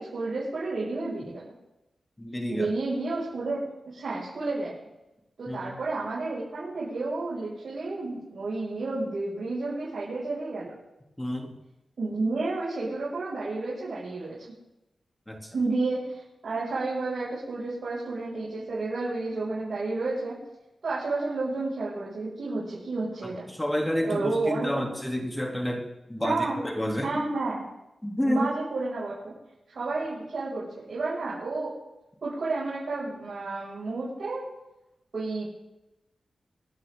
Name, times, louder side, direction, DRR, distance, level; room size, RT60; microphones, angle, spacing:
voice 1, 0.0-1.5 2.5-4.7 5.4-10.8 12.0-14.4 15.5-20.4 20.8-23.4 24.0-24.9 26.2-26.6 27.0-27.7 28.2-29.3 29.7-31.7 32.2-34.5 35.1-35.5, right 3 dB, 65° right, -8 dB, 7.0 m, -31 dB
voice 2, 2.2-2.7 5.5-5.8 11.2-11.5 15.3-15.5 23.2-27.1 28.0-28.5, equal, 15° left, 2 dB, 3.3 m, -30 dB
26.5 x 10.0 x 4.0 m, 0.94 s
cardioid pair, 65°, 0 cm